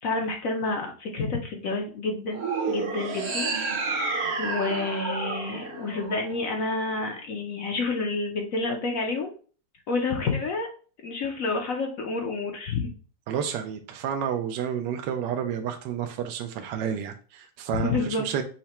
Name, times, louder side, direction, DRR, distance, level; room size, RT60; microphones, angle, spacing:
voice 1, 0.0-3.5 3.8-9.3 9.9-10.7 11.0-12.9 17.8-18.2, left 3 dB, 60° left, 0.9 m, -29 dB
sound 1, 2.3-6.7, right 3 dB, 50° right, 0.8 m, -30 dB
voice 2, 13.3-18.4, right 8 dB, 75° right, 1.2 m, -30 dB
5.7 x 2.1 x 4.2 m
omnidirectional pair, 2.0 m